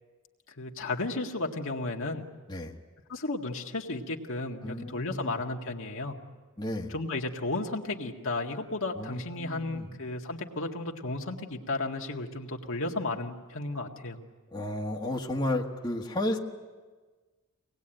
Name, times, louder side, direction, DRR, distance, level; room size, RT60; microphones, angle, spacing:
voice 1, 0.6-2.2 3.1-6.2 6.9-14.2, left 2 dB, 65° left, 1 dB, 1.9 m, -33 dB
voice 2, 4.6-5.4 6.6-6.9 8.9-9.9 14.5-16.4, left 1 dB, 20° left, 0 dB, 1.5 m, -33 dB
24.5 x 19.5 x 9.0 m, 1.4 s
head